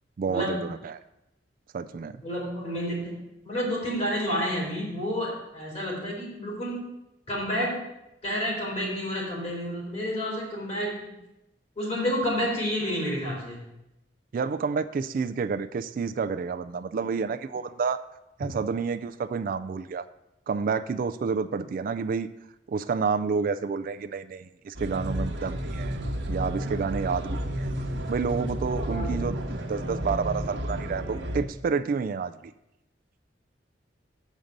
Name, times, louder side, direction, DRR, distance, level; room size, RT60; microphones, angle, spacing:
voice 1, 0.2-1.0 1.7-2.2 14.3-18.0 18.4-20.0 20.5-22.3 22.7-26.0 26.3-27.7 28.1-32.3, right 5 dB, 50° right, 11 dB, 0.3 m, -29 dB
voice 2, 2.2-3.1 3.4-6.8 7.3-7.7 8.2-11.1 11.8-13.6 28.9-29.1, equal, 40° left, -3 dB, 3.5 m, -29 dB
sound 1, 24.7-31.4, equal, 90° right, 1.0 m, -31 dB
7.3 x 5.2 x 6.4 m, 0.90 s
head